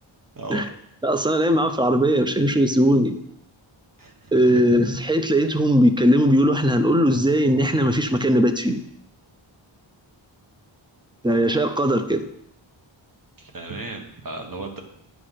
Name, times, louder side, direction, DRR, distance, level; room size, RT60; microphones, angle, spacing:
voice 1, 0.3-0.7 4.0-4.6 13.4-14.8, right 3 dB, 45° right, 3 dB, 1.4 m, -35 dB
voice 2, 1.0-3.2 4.3-8.8 11.2-12.2, equal, 10° right, 8 dB, 0.6 m, -19 dB
9.6 x 5.1 x 5.7 m, 0.74 s
wide cardioid pair, 115°, 48 cm